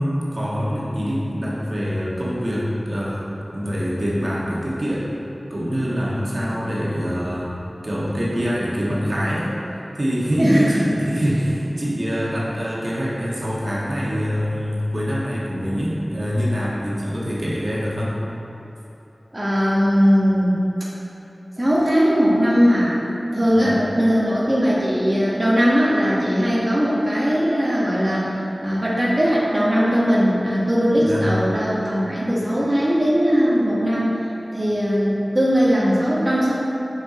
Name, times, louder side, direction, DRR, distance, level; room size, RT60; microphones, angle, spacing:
voice 1, 0.0-3.2 3.5-5.0 5.5-7.5 7.8-9.5 9.9-18.2 23.5-23.8 31.0-31.3, equal, 55° right, -7 dB, 1.5 m, -24 dB
voice 2, 10.4-10.7 19.3-20.6 21.6-22.9 23.3-34.1 34.5-36.5, equal, 25° right, -7 dB, 1.4 m, -19 dB
6.7 x 5.8 x 4.2 m, 2.9 s
wide cardioid pair, 50°, 0 cm